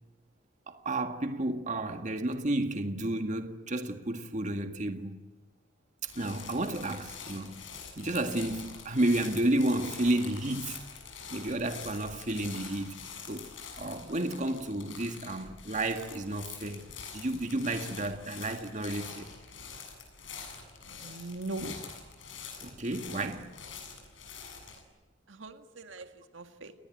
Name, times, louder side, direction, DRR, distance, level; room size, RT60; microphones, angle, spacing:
voice 1, 0.7-5.2 6.0-7.7 8.0-10.8 11.3-13.5 13.8-16.9 17.1-19.3 22.6-23.6, right 1 dB, 40° right, 1.8 m, -31 dB
sound 1, 6.0-24.8, left 6 dB, 80° left, 7.5 m, -45 dB
voice 2, 21.0-21.9 25.3-26.7, right 2 dB, 80° right, 1.9 m, -40 dB
29.5 x 20.5 x 9.2 m
head